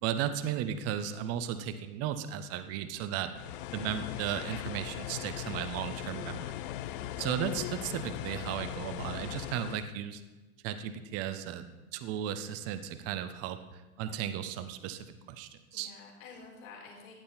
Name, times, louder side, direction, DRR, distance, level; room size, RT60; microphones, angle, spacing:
voice 1, 0.0-3.3 3.7-6.7 7.2-10.2 10.6-11.7 11.9-15.9, right 10 dB, 35° right, 11 dB, 0.9 m, -35 dB
sound 1, 3.3-9.9, left 13 dB, 40° left, 0.5 m, -39 dB
voice 2, 6.7-7.2 15.7-17.1, left 4 dB, 60° left, -1 dB, 4.9 m, -50 dB
15.0 x 10.0 x 4.3 m, 1.1 s
figure-of-eight pair, 85°, 45 cm